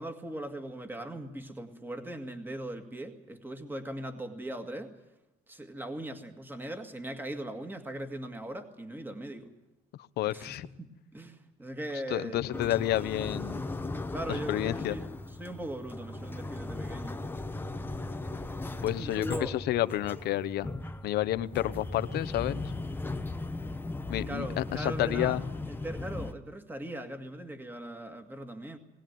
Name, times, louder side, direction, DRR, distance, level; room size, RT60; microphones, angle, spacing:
voice 1, 0.0-4.9 5.5-9.5 10.3-12.5 14.1-17.2 19.0-19.6 24.2-25.4 25.7-28.8, right 1 dB, 10° right, 6 dB, 2.0 m, -39 dB
voice 2, 10.2-10.7 12.1-13.6 14.3-15.0 18.8-20.7 21.0-22.6 24.1-25.4, left 14 dB, 75° left, 14 dB, 0.9 m, -30 dB
sound 1, 12.5-26.3, left 2 dB, 10° left, 0.9 m, -37 dB
20.5 x 18.0 x 9.4 m, 0.99 s
cardioid pair, 110°, 17 cm